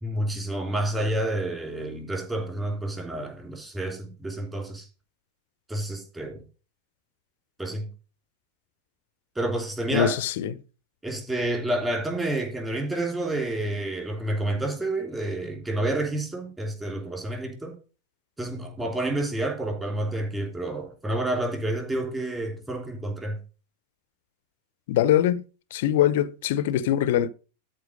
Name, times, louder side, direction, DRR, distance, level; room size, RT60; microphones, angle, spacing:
voice 1, 0.0-4.8 5.7-6.4 7.6-7.9 9.3-10.2 11.0-17.7 18.4-23.4, right 1 dB, 10° right, 3.3 m, -29 dB
voice 2, 9.9-10.5 24.9-25.4 25.7-27.3, left 11 dB, 55° left, 0.8 m, -22 dB
13.0 x 4.5 x 6.3 m
figure-of-eight pair, 90°, 0 cm